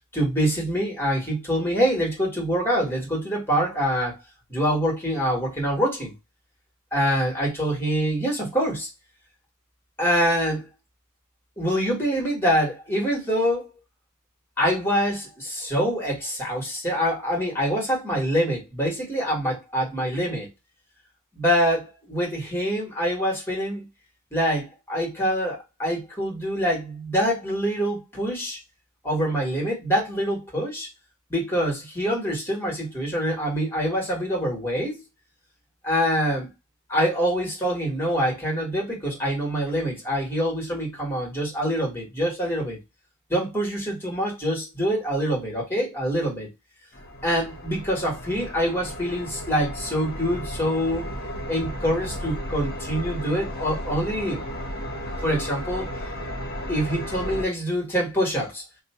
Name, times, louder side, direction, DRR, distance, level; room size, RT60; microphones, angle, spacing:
voice 1, 0.1-4.2 4.5-6.1 6.9-8.9 10.0-10.7 11.6-13.7 14.6-20.5 21.3-23.8 24.3-28.6 29.0-30.9 31.3-35.0 35.8-36.5 36.9-42.8 43.3-46.5 47.2-51.1 51.5-54.4 55.2-55.9 56.7-58.6, equal, 10° left, 1.6 m, -25 dB
sound 1, 46.9-57.4, equal, 45° left, 0.9 m, -34 dB
2.9 x 2.3 x 4.2 m
head